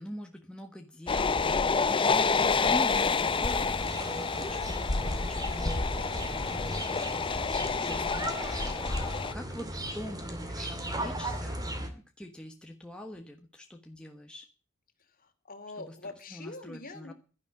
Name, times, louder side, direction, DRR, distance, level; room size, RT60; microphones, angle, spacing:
voice 1, 0.0-11.7 11.9-14.5 15.8-15.9 16.3-17.1, equal, 5° left, 2 dB, 1.3 m, -44 dB
sound 1, 1.1-9.3, left 4 dB, 25° left, 0.6 m, -28 dB
voice 2, 1.7-2.1 15.0-17.1, left 2 dB, 45° left, 7 dB, 2.7 m, -45 dB
sound 2, 3.2-11.9, right 1 dB, 20° right, 2.4 m, -37 dB
11.5 x 11.0 x 8.2 m, 0.38 s
head